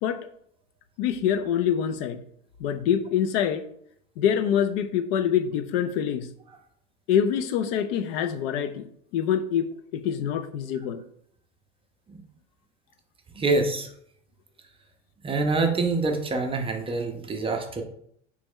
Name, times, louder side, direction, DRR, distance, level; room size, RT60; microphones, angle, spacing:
voice 1, 1.0-2.2 2.6-3.6 4.2-6.3 7.1-8.9 9.1-11.0, left 9 dB, 55° left, 9 dB, 0.4 m, -25 dB
voice 2, 13.3-13.9 15.2-17.8, right 3 dB, 15° right, 4 dB, 0.5 m, -25 dB
3.1 x 3.0 x 3.6 m, 0.68 s
hypercardioid pair, 85°, 36 cm